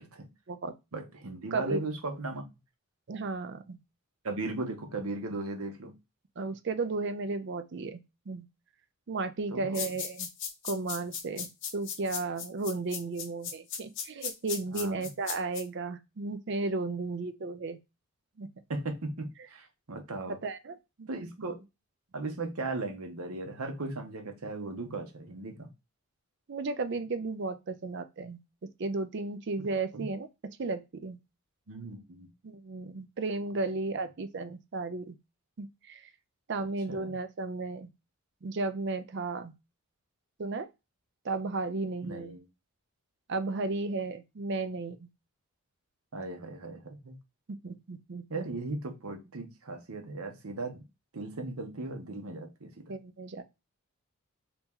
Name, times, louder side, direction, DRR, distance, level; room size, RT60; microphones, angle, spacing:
voice 1, 0.9-2.4 4.2-5.9 9.5-9.8 14.7-15.1 18.7-20.4 21.1-21.6 22.1-25.7 29.9-30.1 31.7-32.3 36.9-37.1 42.0-42.4 46.1-47.2 48.3-50.8 51.1-52.9, right 2 dB, 75° right, 0.9 m, -37 dB
voice 2, 3.1-3.8 6.4-8.0 8.3-8.5 9.1-10.3 10.6-11.5 11.7-17.8 18.4-18.5 20.3-21.1 26.5-28.4 28.8-30.3 30.6-31.2 32.4-35.2 35.6-36.1 36.5-37.9 38.4-39.5 40.4-40.7 41.2-42.4 43.3-45.1 47.5-48.4 52.9-53.4, right 3 dB, 50° right, 0.5 m, -34 dB
sound 1, 9.7-15.6, left 7 dB, 55° left, 0.8 m, -36 dB
2.9 x 2.9 x 3.5 m
head